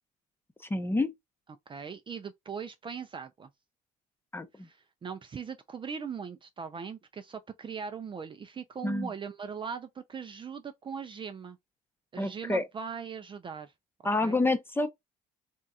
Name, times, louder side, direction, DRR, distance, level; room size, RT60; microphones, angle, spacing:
voice 1, 0.7-1.1 4.3-4.7 8.8-9.1 12.2-12.6 14.0-14.9, left 2 dB, 15° left, 0.7 m, -28 dB
voice 2, 1.5-3.5 4.6-11.6 12.1-13.7 14.2-14.4, right 6 dB, 30° right, 0.5 m, -40 dB
3.6 x 2.4 x 4.1 m
cardioid pair, 110°, 17 cm